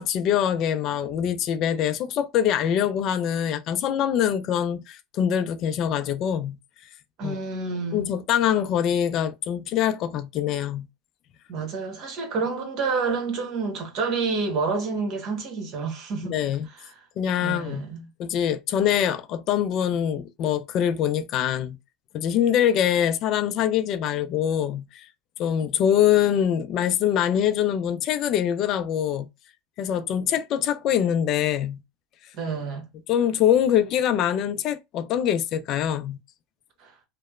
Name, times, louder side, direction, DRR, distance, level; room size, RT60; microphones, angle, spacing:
voice 1, 0.0-6.6 7.2-7.4 7.9-10.9 16.2-16.7 17.2-17.8 18.2-21.8 22.1-25.1 25.4-29.3 29.8-31.8 33.1-36.2, left 9 dB, 50° left, 0.4 m, -24 dB
voice 2, 7.2-8.2 11.5-16.4 16.7-16.9 17.4-18.1 32.3-32.9 36.8-36.9, right 4 dB, 55° right, 1.1 m, -29 dB
2.9 x 2.0 x 2.3 m
hypercardioid pair, 95°, 0 cm